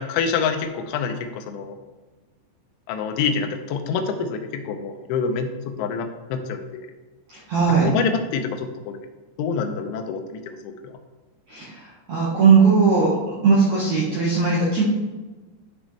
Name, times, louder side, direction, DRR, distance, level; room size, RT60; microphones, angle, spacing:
voice 1, 0.0-1.8 2.9-6.9 7.7-9.1 9.4-10.9, left 5 dB, 80° left, 5 dB, 3.0 m, -27 dB
voice 2, 7.5-7.9 11.5-11.7 12.1-13.1 13.4-14.8, right 5 dB, 85° right, -7 dB, 1.6 m, -18 dB
11.5 x 6.2 x 3.3 m, 1.2 s
omnidirectional pair, 5.9 m